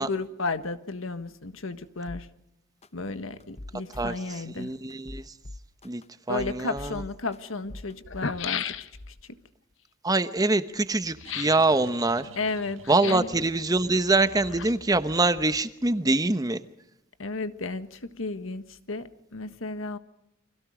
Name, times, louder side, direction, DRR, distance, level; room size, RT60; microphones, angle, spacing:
voice 1, 0.0-2.3 2.9-4.7 6.3-8.7 9.1-9.4 12.3-13.3 17.2-20.0, left 3 dB, 90° left, 10 dB, 1.6 m, -33 dB
sound 1, 2.1-2.2 2.8-2.9 3.4-4.4 4.9-6.0 6.4-7.4 7.7-7.9, left 1 dB, 35° left, 0.8 m, -41 dB
voice 2, 4.6-5.3 5.8-6.0 6.3-7.0 10.0-12.3 12.9-16.6, right 2 dB, 20° right, 11 dB, 1.0 m, -24 dB
sound 2, 7.6-7.7 8.0-9.2 11.2-11.7 12.8-13.4 14.2-15.0 15.3-15.4, left 7 dB, 65° left, 1.1 m, -35 dB
sound 3, 10.7-16.3, right 3 dB, 80° right, 1.5 m, -49 dB
30.0 x 25.0 x 5.1 m, 0.83 s
head